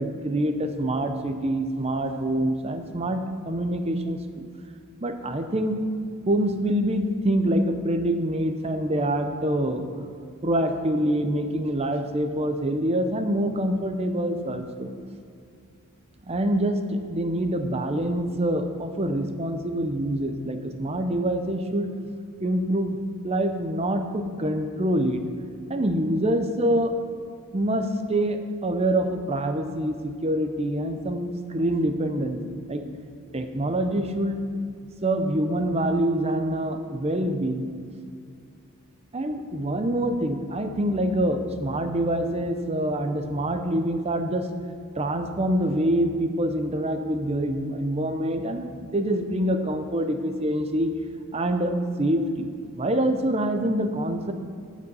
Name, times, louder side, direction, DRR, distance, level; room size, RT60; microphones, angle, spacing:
voice 1, 0.0-4.5 5.0-5.8 6.3-9.8 10.4-14.9 16.3-21.9 22.4-23.0 23.2-25.2 25.7-26.9 27.5-32.8 33.3-34.4 35.0-37.7 39.1-44.5 45.0-50.9 51.3-52.5 52.8-54.3, right 1 dB, 30° right, 7 dB, 0.7 m, -25 dB
14.0 x 5.2 x 5.4 m, 2.3 s
head